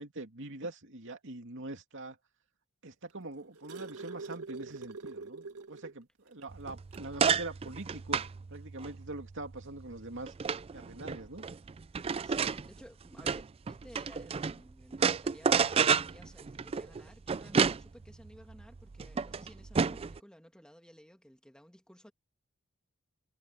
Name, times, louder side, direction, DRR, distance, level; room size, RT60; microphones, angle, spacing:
voice 1, 0.0-2.2 2.8-8.2 8.5-10.3 10.7-11.4, right 2 dB, 60° right, 2.6 m, -43 dB
sound 1, 3.1-6.0 6.4-6.5 6.9-7.1 8.2-8.3, right 4 dB, 85° right, 1.7 m, -44 dB
sound 2, 6.5-14.6 14.9-20.2, right 6 dB, 25° right, 0.3 m, -31 dB
voice 2, 12.2-22.1, equal, 5° left, 2.3 m, -55 dB
head